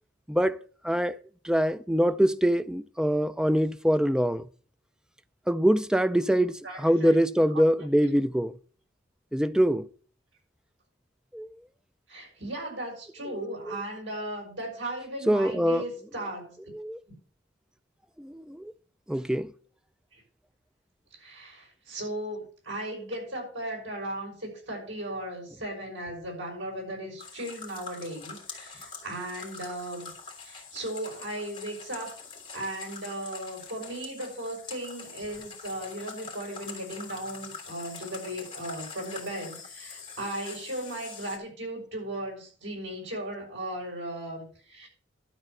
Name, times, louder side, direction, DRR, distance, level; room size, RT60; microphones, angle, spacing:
voice 1, 0.3-0.6 0.8-1.2 1.4-4.5 5.5-8.5 9.3-9.9 11.3-11.5 13.3-13.8 15.3-15.8 16.7-17.0 18.2-18.7 19.1-19.5, equal, 5° right, 0.5 m, -24 dB
voice 2, 6.6-7.7 8.0-8.1 12.1-16.6 20.1-20.2 21.2-30.1 30.4-32.2 32.5-44.9, right 1 dB, 75° right, 6.2 m, -37 dB
sound 1, 27.2-41.4, left 5 dB, 25° left, 3.1 m, -44 dB
12.5 x 4.4 x 8.1 m
head